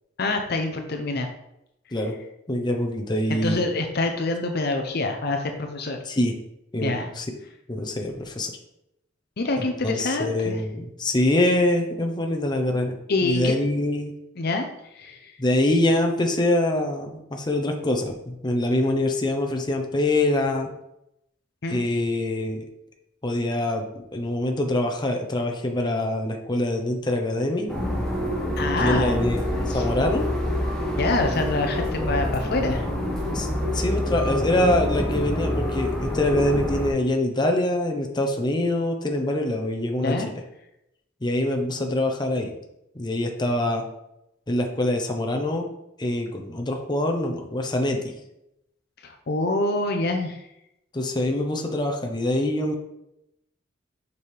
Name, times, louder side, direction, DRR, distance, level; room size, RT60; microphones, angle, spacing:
voice 1, 0.2-1.3 3.3-6.0 6.8-7.1 9.4-10.6 13.1-13.6 14.4-14.7 14.9-15.4 21.6-21.8 28.6-29.2 29.7-29.8 31.0-32.8 40.0-40.3 49.0-50.4, left 2 dB, 55° left, 5 dB, 0.7 m, -26 dB
voice 2, 2.5-3.7 6.1-6.3 6.7-7.3 7.7-8.5 9.6-14.1 15.4-20.7 21.7-22.6 23.2-27.7 28.8-30.3 31.3-31.4 33.3-33.5 33.7-40.2 41.2-42.5 42.9-43.8 44.5-45.7 46.0-48.1 50.9-52.7, left 1 dB, 25° left, 2 dB, 0.8 m, -24 dB
sound 1, 27.7-36.9, left 1 dB, 5° left, 1.5 m, -26 dB
6.8 x 5.4 x 3.4 m, 0.83 s
head